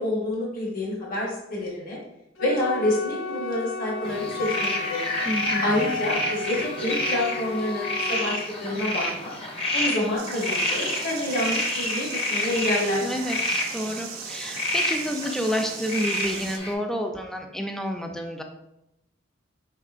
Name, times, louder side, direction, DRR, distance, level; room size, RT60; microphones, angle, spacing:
voice 1, 0.0-2.0 2.4-5.0 5.6-9.3 9.7-13.0, left 1 dB, 45° left, -3 dB, 1.0 m, -28 dB
Wind instrument woodwind instrument, 2.4-8.4, left 3 dB, 80° left, 0.6 m, -33 dB
sound 1, 4.0-16.7, left 1 dB, 30° left, 0.7 m, -29 dB
voice 2, 5.3-5.9 13.0-18.4, equal, ahead, 4 dB, 0.3 m, -29 dB
sound 2, 10.2-16.6, right 8 dB, 85° right, 0.6 m, -39 dB
4.5 x 4.1 x 2.4 m, 0.88 s
head